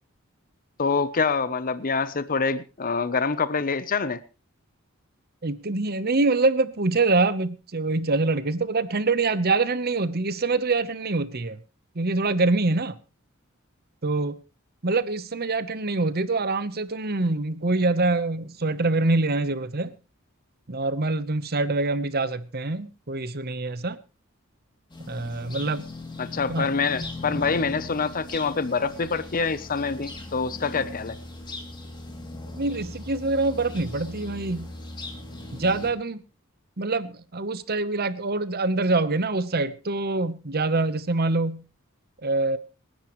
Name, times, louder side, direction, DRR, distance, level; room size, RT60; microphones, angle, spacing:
voice 1, 0.8-4.2 26.2-31.1, left 4 dB, 40° left, 0.8 m, -26 dB
voice 2, 5.4-11.6 11.9-13.0 14.0-14.4 14.8-19.9 20.7-24.0 25.1-25.8 26.5-26.7 27.0-27.5 32.5-34.7 35.5-36.2 36.8-41.6 42.2-42.6, right 3 dB, 50° right, 1.0 m, -25 dB
sound 1, 24.9-35.9, left 2 dB, 20° left, 2.8 m, -39 dB
26.0 x 10.5 x 3.1 m
head